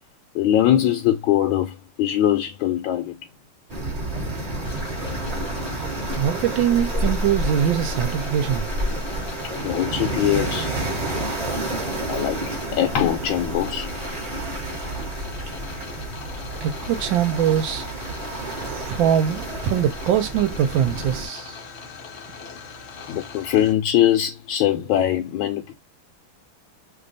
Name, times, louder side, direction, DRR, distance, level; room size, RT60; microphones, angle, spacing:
voice 1, 0.3-3.2 9.4-10.7 12.1-12.4 12.7-13.9 19.5-19.6 23.1-25.7, left 11 dB, 80° left, 1.3 m, -22 dB
sound 1, 3.7-21.3, right 1 dB, 30° right, 0.8 m, -29 dB
sound 2, 4.6-23.7, left 5 dB, 65° left, 0.6 m, -41 dB
voice 2, 6.1-8.7 16.6-17.9 18.6-21.6, right 9 dB, 75° right, 1.3 m, -22 dB
3.2 x 2.3 x 3.9 m
omnidirectional pair, 2.2 m